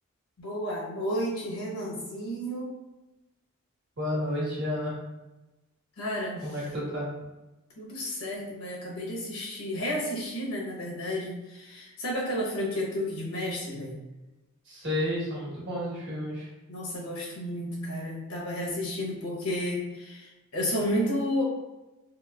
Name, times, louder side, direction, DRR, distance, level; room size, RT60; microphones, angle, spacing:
voice 1, 0.4-2.7 6.0-6.5 7.8-14.0 16.7-21.4, equal, 75° left, -4 dB, 0.9 m, -32 dB
voice 2, 4.0-5.0 6.4-7.1 14.6-16.5, left 1 dB, 50° right, -6 dB, 1.1 m, -31 dB
3.0 x 2.8 x 2.3 m, 1.0 s
head